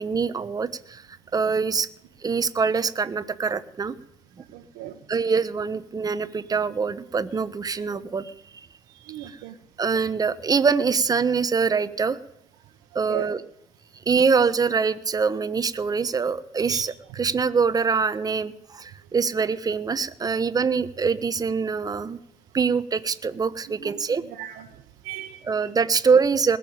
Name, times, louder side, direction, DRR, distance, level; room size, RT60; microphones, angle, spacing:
voice 1, 0.0-1.9 2.2-3.9 5.1-8.3 9.8-12.2 12.9-13.4 14.1-22.2 22.5-24.2 25.4-26.6, right 5 dB, 25° right, 13 dB, 1.1 m, -24 dB
voice 2, 4.5-4.9 9.0-9.5 13.1-13.3 16.7-16.8 23.8-23.9 24.4-24.6 25.0-25.4, right 13 dB, 90° right, 1 dB, 1.3 m, -35 dB
20.5 x 7.0 x 8.8 m, 0.79 s
cardioid pair, 100°, 14 cm